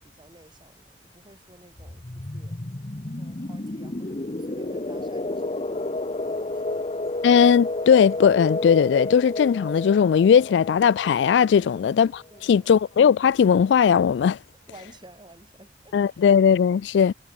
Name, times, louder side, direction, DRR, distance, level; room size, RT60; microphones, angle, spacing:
voice 1, 0.0-2.6 3.2-6.9 11.6-12.0 12.3-12.7 14.7-16.2, right 1 dB, 25° right, 3.8 m, -52 dB
sound 1, 1.8-12.3, left 2 dB, 35° left, 1.0 m, -31 dB
voice 2, 7.2-12.1 12.4-14.4 15.9-17.1, left 7 dB, 80° left, 0.3 m, -18 dB
head